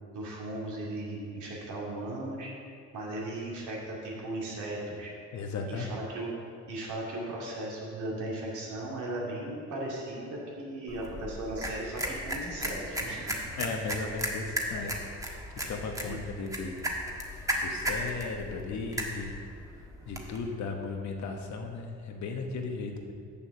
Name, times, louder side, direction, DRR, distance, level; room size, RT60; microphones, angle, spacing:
voice 1, 0.1-2.5 2.9-5.1 5.7-6.3 6.7-14.0 16.0-16.2, right 1 dB, 80° right, -4 dB, 2.6 m, -37 dB
voice 2, 5.3-6.1 13.6-14.9 15.7-16.8 17.5-19.3 20.1-23.1, left 4 dB, 65° left, 3 dB, 1.2 m, -36 dB
sound 1, 10.9-20.4, equal, 10° right, 1.4 m, -36 dB
7.1 x 7.0 x 6.5 m, 2.3 s
cardioid pair, 90°, 30 cm